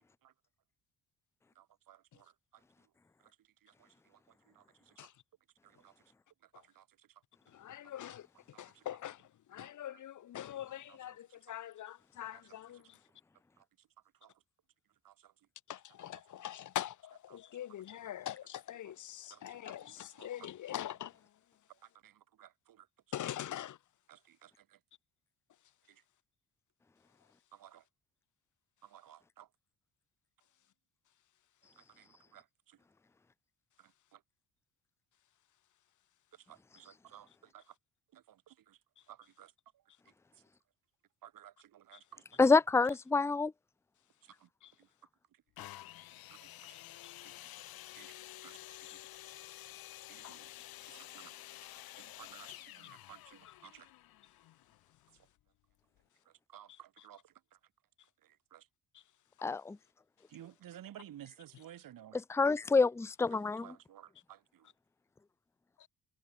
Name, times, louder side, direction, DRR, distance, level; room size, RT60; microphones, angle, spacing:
voice 1, 1.6-2.6 3.2-3.3 3.6-4.2 4.5-4.9 5.6-5.9 6.4-7.1 7.7-7.8 8.5-8.8 9.6-10.0 10.9-11.0 12.3-12.4 13.6-13.9 14.2-14.3 15.0-15.3 17.3-17.4 19.3-19.8 20.2-20.5 21.7-22.9 24.1-24.8 25.9-26.0 27.5-27.8 28.8-29.5 31.8-32.8 33.8-34.2 36.3-37.7 38.1-38.8 39.1-39.5 41.2-42.4 44.2-44.5 44.8-44.9 46.3-46.8 47.2-47.3 47.9-48.1 48.4-49.0 50.1-50.5 50.9-51.3 52.0-53.9 56.3-57.3 58.2-58.7 60.3-62.2 63.3-64.7, right 11 dB, 70° right, 5.6 m, -56 dB
voice 2, 7.5-13.0 15.7-21.4 23.1-23.8 39.0-39.1 41.9-42.0 44.6-44.7 46.7-47.1 48.4-48.5 48.9-49.0 50.2-50.7 52.0-52.1 52.8-52.9 53.4-53.5 56.7-56.8 58.9-59.0 65.8-65.9, left 11 dB, 55° left, 1.1 m, -44 dB
voice 3, 42.4-43.5 59.4-59.8 62.3-63.7, left 4 dB, 10° left, 0.5 m, -27 dB
sound 1, 45.6-55.3 56.0-56.1, left 15 dB, 85° left, 6.2 m, -51 dB
cardioid pair, 100°, 35 cm